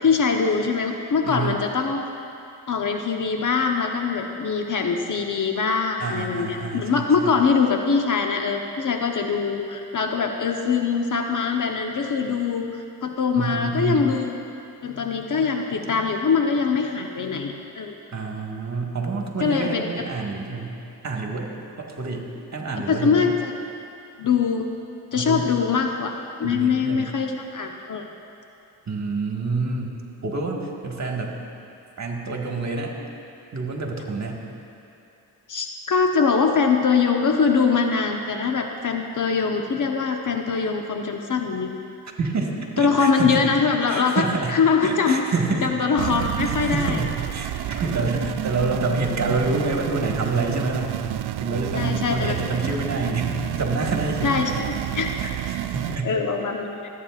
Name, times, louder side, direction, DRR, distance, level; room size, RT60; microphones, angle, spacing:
voice 1, 0.0-2.0 2.7-14.4 14.8-17.9 19.4-20.0 22.9-23.5 24.2-24.7 25.1-28.1 35.5-41.8 42.8-45.2 45.6-47.0 51.7-52.3 52.6-52.8 54.2-55.2 56.0-56.9, left 5 dB, 45° left, 3 dB, 1.0 m, -23 dB
voice 2, 1.2-1.6 6.0-7.4 13.4-14.1 18.1-20.7 21.0-21.5 21.8-23.2 25.1-25.5 26.4-27.1 28.9-29.9 30.2-31.3 32.0-32.9 33.5-34.4 42.2-43.5 43.9-44.5 44.8-45.7 46.0-46.1 46.5-51.0 51.4-54.3 55.2-56.1, right 3 dB, 40° right, 0 dB, 1.7 m, -27 dB
sound 1, 46.0-56.0, right 13 dB, 65° right, 0.5 m, -29 dB
17.5 x 8.5 x 2.5 m, 2.8 s
supercardioid pair, 55°, 42 cm